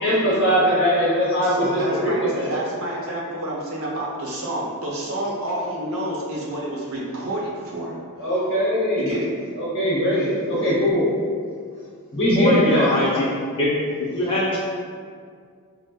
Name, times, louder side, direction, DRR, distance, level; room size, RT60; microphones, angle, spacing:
voice 1, 0.0-2.5 8.2-9.2 9.5-11.1 12.1-12.9, equal, 55° left, -8 dB, 0.8 m, -21 dB
voice 2, 1.4-8.0 9.0-9.3, right 1 dB, 65° right, -5 dB, 0.8 m, -29 dB
voice 3, 12.3-13.2 13.6-13.7 14.1-14.6, left 1 dB, 25° left, -8 dB, 0.5 m, -22 dB
4.8 x 2.1 x 2.2 m, 2.1 s
head